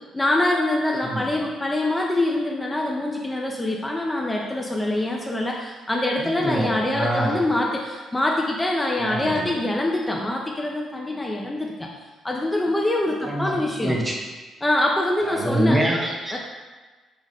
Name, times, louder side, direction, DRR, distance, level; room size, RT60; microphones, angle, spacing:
voice 1, 0.1-11.9 12.2-13.9 14.6-15.8 16.3-16.4, left 1 dB, 15° left, -1 dB, 0.4 m, -24 dB
voice 2, 6.2-7.4 9.0-9.5 13.2-13.5 13.8-14.2 15.2-16.4, right 1 dB, 20° right, -1 dB, 0.7 m, -25 dB
4.9 x 2.1 x 4.0 m, 1.3 s
cardioid pair, 90°, 0 cm